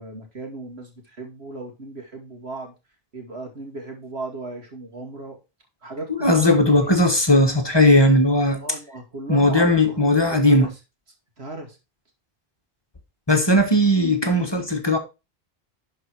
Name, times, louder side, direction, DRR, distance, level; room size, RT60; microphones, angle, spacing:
voice 1, 0.0-2.7 3.1-5.4 5.8-6.8 8.5-10.7 11.4-11.8, right 2 dB, 90° right, 2.7 m, -36 dB
voice 2, 6.1-8.6 9.3-10.7 13.3-15.0, left 1 dB, 25° left, 1.4 m, -17 dB
11.5 x 4.7 x 4.6 m
omnidirectional pair, 1.0 m